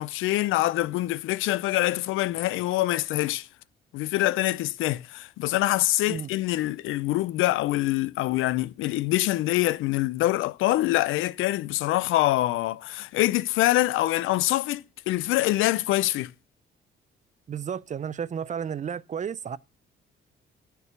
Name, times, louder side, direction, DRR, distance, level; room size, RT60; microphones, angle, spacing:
voice 1, 0.0-3.5 3.9-16.3, left 16 dB, 85° left, 0.4 m, -25 dB
voice 2, 17.5-19.6, right 7 dB, 40° right, 0.5 m, -32 dB
10.5 x 4.7 x 6.7 m
cardioid pair, 90°, 20 cm